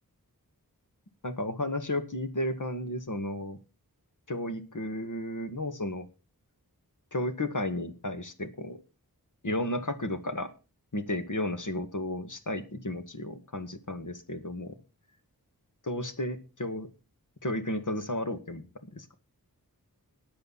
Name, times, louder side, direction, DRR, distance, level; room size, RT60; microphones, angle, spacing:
voice 1, 1.2-3.6 4.3-6.1 7.1-8.8 9.4-10.5 10.9-14.8 15.8-16.9 17.4-18.6 18.9-19.1, left 1 dB, 55° left, 9 dB, 2.0 m, -33 dB
13.5 x 10.5 x 4.2 m, 0.33 s
wide cardioid pair, 60°, 37 cm